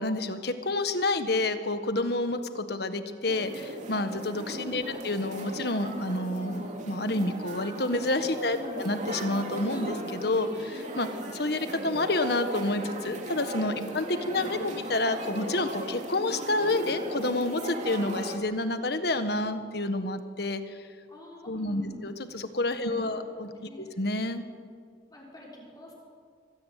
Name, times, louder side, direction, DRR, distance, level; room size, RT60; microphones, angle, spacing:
voice 1, 0.0-20.8 21.5-23.5 23.8-24.4, left 2 dB, 55° left, 9 dB, 1.6 m, -29 dB
sound 1, 3.2-18.4, right 1 dB, 40° right, 3.1 m, -37 dB
voice 2, 4.7-5.0 8.3-8.8 13.9-14.0 14.2-14.9 21.1-22.0 22.8-23.9 25.1-25.9, left 1 dB, 20° left, -3 dB, 5.9 m, -47 dB
24.5 x 17.0 x 9.4 m, 2.1 s
head